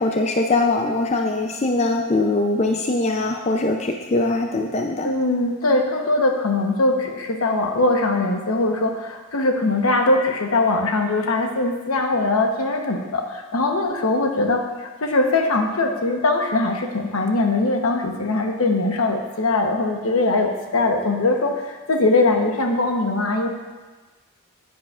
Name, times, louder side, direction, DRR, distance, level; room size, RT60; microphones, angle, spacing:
voice 1, 0.0-5.1, left 2 dB, 30° left, 3 dB, 0.4 m, -22 dB
voice 2, 5.0-23.5, left 2 dB, 80° left, 3 dB, 1.0 m, -21 dB
9.8 x 9.3 x 2.4 m, 1.3 s
head